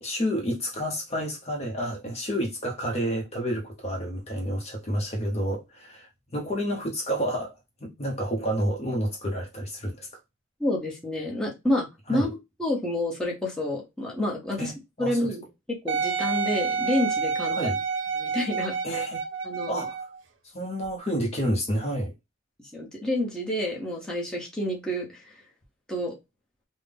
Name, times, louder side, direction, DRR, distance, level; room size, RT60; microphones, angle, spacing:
voice 1, 0.0-7.5 7.8-10.1 12.1-12.3 14.6-14.7 15.0-15.2 17.5-17.8 18.8-19.2 19.7-20.0 20.5-22.1, equal, 30° left, 0.7 m, -29 dB
voice 2, 10.6-14.7 15.0-17.7 18.1-19.0 19.4-19.8 22.7-25.2 25.9-26.1, left 1 dB, 5° left, 0.9 m, -29 dB
Wind instrument woodwind instrument, 15.9-20.2 20.8-20.9, right 5 dB, 60° right, 0.6 m, -29 dB
3.6 x 2.1 x 3.4 m
head